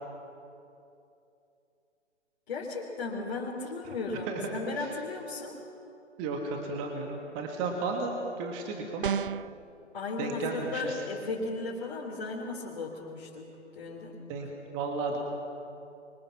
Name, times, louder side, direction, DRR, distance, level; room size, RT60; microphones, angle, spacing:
voice 1, 2.5-5.6 9.9-14.2, left 3 dB, 45° left, -4 dB, 3.8 m, -36 dB
voice 2, 4.3-4.9 6.2-9.1 10.2-11.0 14.3-15.2, right 3 dB, 20° right, 2 dB, 1.8 m, -34 dB
sound 1, 9.0-9.6, right 7 dB, 45° right, 0.5 m, -30 dB
27.5 x 24.5 x 5.8 m, 2.7 s
figure-of-eight pair, 135°, 36 cm